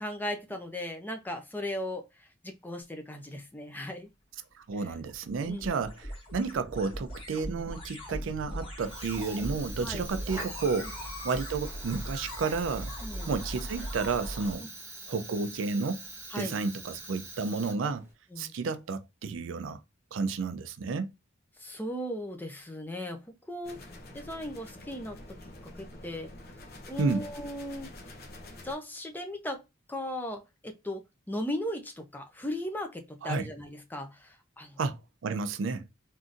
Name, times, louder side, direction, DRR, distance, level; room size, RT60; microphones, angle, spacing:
voice 1, 0.0-2.0 2.4-4.1 4.9-5.0 5.4-5.9 9.8-10.1 10.8-10.9 13.0-13.3 16.3-16.6 18.3-18.5 21.6-25.2 25.6-26.3 26.9-27.9 28.6-29.6 29.9-34.8, left 1 dB, 10° left, 0.6 m, -37 dB
voice 2, 4.5-10.9 11.2-12.9 13.3-14.7 15.1-16.0 16.4-18.1 18.4-19.8 20.1-21.1 27.0-27.3 33.2-33.5 34.8-35.9, right 4 dB, 70° right, 0.4 m, -31 dB
sound 1, 4.7-14.6, equal, 25° left, 1.6 m, -40 dB
Fire, 8.8-18.1, right 2 dB, 15° right, 1.1 m, -44 dB
sound 2, 23.6-28.7, left 1 dB, 50° left, 0.7 m, -47 dB
3.6 x 2.6 x 2.5 m
head